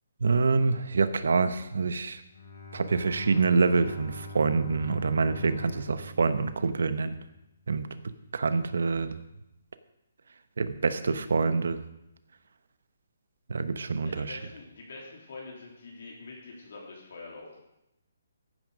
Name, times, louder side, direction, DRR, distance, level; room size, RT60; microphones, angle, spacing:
voice 1, 0.2-2.2 2.7-7.1 7.7-9.1 10.6-11.8 13.5-14.4, right 4 dB, 75° right, 11 dB, 1.1 m, -26 dB
Bowed string instrument, 2.3-7.2, left 1 dB, 80° left, 3.4 m, -44 dB
voice 2, 14.0-17.6, left 3 dB, 60° left, -2 dB, 3.4 m, -45 dB
14.5 x 9.6 x 5.2 m, 0.90 s
hypercardioid pair, 165°, 0 cm